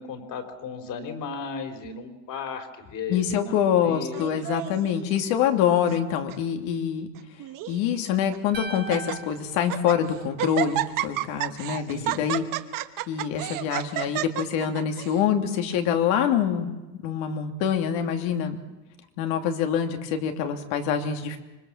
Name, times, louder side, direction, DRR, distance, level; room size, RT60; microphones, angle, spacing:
voice 1, 0.0-4.4 11.9-12.2, left 5 dB, 55° left, 6 dB, 3.9 m, -35 dB
voice 2, 3.1-7.1 7.7-12.4 13.1-16.7 17.0-18.6 19.2-21.4, left 8 dB, 90° left, 6 dB, 2.8 m, -25 dB
Laughter, 4.1-4.9 5.6-6.0 6.3-6.4 7.1-7.8 8.3-8.4 8.7-9.2 9.6-10.0 10.4-15.2, right 14 dB, 55° right, 1.3 m, -31 dB
sound 1, 8.5-10.8, right 2 dB, 25° right, 1.3 m, -40 dB
26.0 x 22.0 x 7.3 m, 1.1 s
cardioid pair, 145°, 39 cm